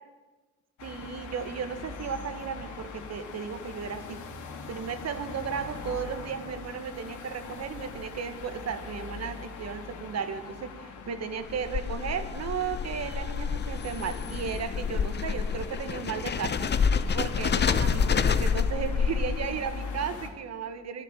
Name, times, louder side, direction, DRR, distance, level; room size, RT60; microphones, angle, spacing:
sound 1, 0.8-20.3, left 5 dB, 80° left, 2.3 m, -40 dB
voice 1, 0.8-4.2 4.7-16.7 17.1-21.0, right 7 dB, 60° right, 10 dB, 1.6 m, -35 dB
sound 2, 11.4-19.7, left 6 dB, 35° left, 0.8 m, -28 dB
12.5 x 10.5 x 9.2 m, 1.3 s
cardioid pair, 90°, 30 cm